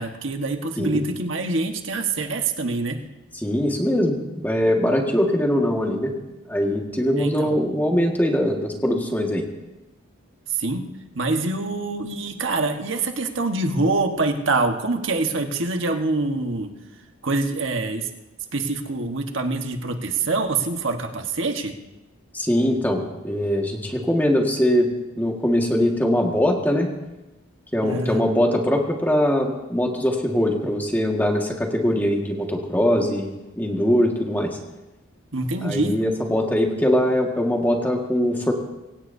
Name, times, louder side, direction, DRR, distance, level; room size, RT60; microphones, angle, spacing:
voice 1, 0.0-3.0 7.2-7.5 10.5-10.8 11.1-16.7 17.2-18.1 18.5-21.8 27.8-28.2 35.3-36.0, right 3 dB, 70° right, 4 dB, 1.4 m, -25 dB
voice 2, 3.3-6.1 6.5-9.4 22.3-24.9 25.2-26.9 27.7-34.6 35.6-38.5, equal, 10° left, 1 dB, 1.7 m, -22 dB
24.5 x 16.5 x 2.7 m, 1.0 s
head